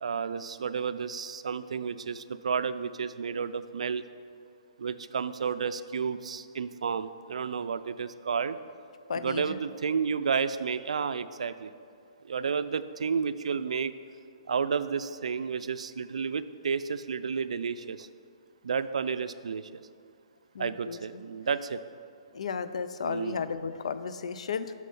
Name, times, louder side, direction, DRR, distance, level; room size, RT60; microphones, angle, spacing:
voice 1, 0.0-4.0 4.8-8.6 9.1-11.7 12.3-13.9 14.5-18.1 18.6-19.8 20.6-21.8 23.0-23.4, right 6 dB, 85° right, 13 dB, 0.4 m, -31 dB
voice 2, 9.1-9.6 20.5-21.0 22.3-24.7, left 6 dB, 75° left, 12 dB, 0.5 m, -34 dB
7.5 x 6.4 x 5.4 m, 2.3 s
hypercardioid pair, 165°, 3 cm